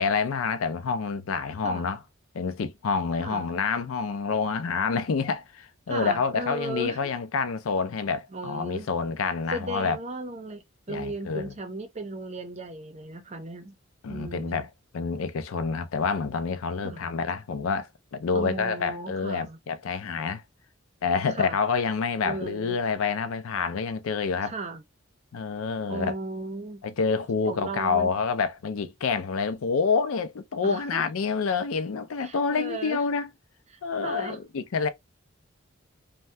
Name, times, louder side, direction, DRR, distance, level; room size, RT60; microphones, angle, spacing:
voice 1, 0.0-2.0 2.3-10.0 10.9-11.5 14.0-14.7 14.9-20.4 21.0-24.5 25.3-26.1 26.8-33.3 33.8-34.9, left 5 dB, 90° left, 0.4 m, -28 dB
voice 2, 5.9-7.0 8.3-8.9 9.5-10.6 10.9-13.8 14.1-14.7 16.8-17.0 18.3-19.6 21.3-21.6 22.2-22.8 24.4-24.8 25.9-26.8 27.5-28.1 30.6-31.1 32.2-33.0 33.7-34.4, right 2 dB, 35° right, 0.6 m, -36 dB
2.7 x 2.1 x 3.2 m
head